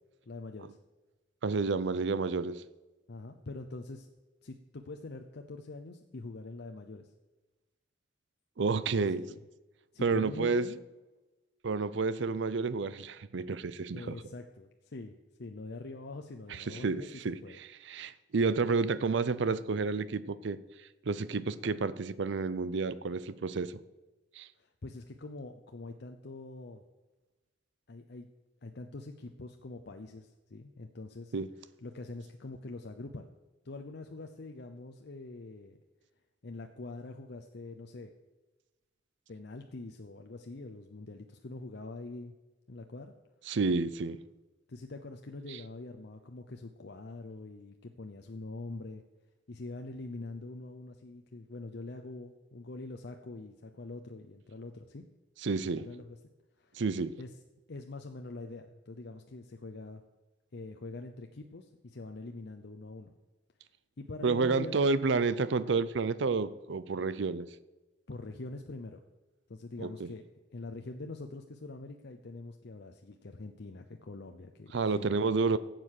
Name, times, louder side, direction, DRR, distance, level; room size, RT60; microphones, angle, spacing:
voice 1, 0.3-0.8 3.1-4.1 4.4-7.1 9.0-9.4 9.9-10.9 13.9-17.1 17.4-17.6 24.6-26.8 27.9-28.3 28.6-31.3 31.8-33.3 33.6-35.8 36.4-38.1 39.3-42.3 42.7-43.1 44.7-49.0 49.5-55.1 55.7-56.2 56.6-56.8 57.2-57.3 57.7-60.0 60.5-63.1 64.0-64.8 68.1-69.0 69.5-70.3 70.5-75.2, left 2 dB, 60° left, 4 dB, 0.7 m, -44 dB
voice 2, 1.4-2.6 8.6-9.2 10.0-10.7 11.6-14.2 16.5-20.6 21.1-23.8 24.4-24.5 31.3-31.5 43.5-44.2 55.4-55.9 56.8-57.1 64.2-67.5 69.8-70.1 74.7-75.6, right 4 dB, 65° right, 16 dB, 0.5 m, -30 dB
12.0 x 7.7 x 6.5 m, 1.1 s
head